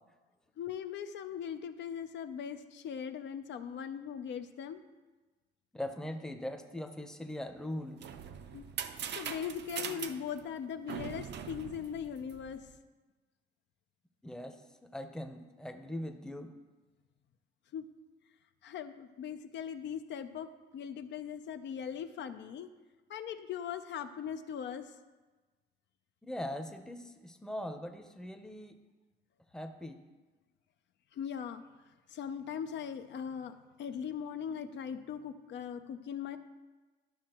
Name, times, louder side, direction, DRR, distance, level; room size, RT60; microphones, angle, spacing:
voice 1, 0.6-4.8 8.5-8.7 9.1-12.6 17.7-17.9 18.6-22.7 23.1-24.9 31.1-31.6 32.1-36.4, left 8 dB, 65° left, 9 dB, 0.5 m, -40 dB
voice 2, 5.7-8.0 14.2-16.5 26.2-28.8 29.5-30.0, left 1 dB, 5° left, 6 dB, 0.7 m, -41 dB
sound 1, 7.7-12.7, right 8 dB, 60° right, 0.6 m, -42 dB
12.0 x 6.0 x 2.9 m, 1.2 s
cardioid pair, 90°, 20 cm